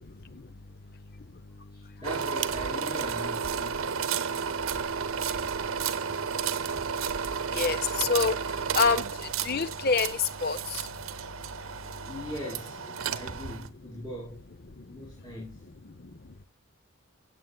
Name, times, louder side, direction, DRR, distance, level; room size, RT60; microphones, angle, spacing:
voice 1, 1.7-3.7 12.0-14.4 14.9-15.6, left 1 dB, 20° left, 2.8 m, -41 dB
sound 1, 2.0-13.7, right 6 dB, 75° right, 0.8 m, -32 dB
voice 2, 7.6-8.3 8.7-9.1 9.4-10.6, left 5 dB, 45° left, 0.7 m, -25 dB
16.5 x 7.5 x 2.3 m
head